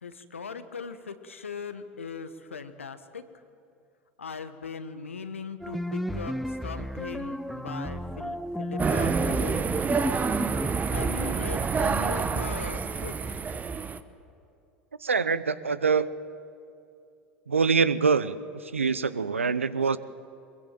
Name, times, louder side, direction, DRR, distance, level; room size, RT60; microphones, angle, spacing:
voice 1, 0.0-3.2 4.2-6.3 6.6-9.7 10.9-13.1, left 5 dB, 85° left, 10 dB, 1.2 m, -39 dB
sound 1, 5.6-11.2, equal, ahead, 0.7 m, -33 dB
sound 2, 8.8-14.0, right 5 dB, 25° right, 1.0 m, -28 dB
voice 2, 15.0-16.1 17.5-18.4 18.7-20.0, right 5 dB, 90° right, 16 dB, 0.7 m, -24 dB
22.5 x 22.0 x 7.6 m, 2.5 s
figure-of-eight pair, 80°, 7 cm